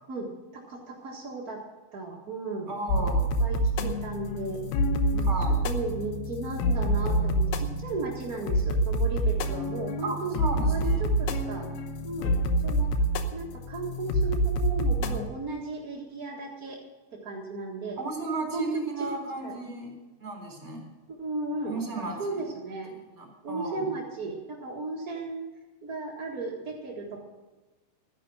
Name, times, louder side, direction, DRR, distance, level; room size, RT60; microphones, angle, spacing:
voice 1, 0.1-1.6 1.9-2.7 3.0-3.1 3.4-4.6 5.1-5.3 5.6-11.7 12.0-12.3 12.6-12.9 13.3-16.8 17.2-18.0 18.5-19.5 21.1-22.9 23.4-25.4 25.8-27.3, right 3 dB, 45° right, -3 dB, 1.1 m, -35 dB
voice 2, 2.7-3.3 5.2-5.7 10.0-11.0 18.0-20.8 21.7-22.4 23.1-23.9, right 2 dB, 20° right, 0 dB, 3.7 m, -34 dB
sound 1, 2.9-15.3, right 1 dB, 90° left, 2.9 m, -27 dB
13.5 x 10.0 x 6.3 m, 1.2 s
omnidirectional pair, 4.3 m